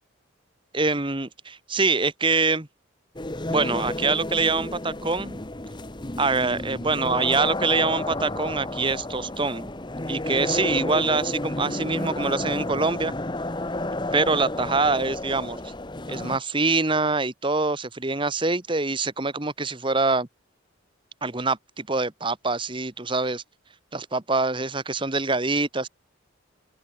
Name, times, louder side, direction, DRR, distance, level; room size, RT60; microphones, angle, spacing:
voice 1, 0.7-2.7 3.5-5.4 6.2-9.7 10.1-13.1 14.1-15.6 16.1-20.3 21.2-23.4 23.9-25.9, right 3 dB, 25° right, 1.4 m, -25 dB
sound 1, 3.2-16.4, left 1 dB, 20° left, 1.1 m, -31 dB
open air
head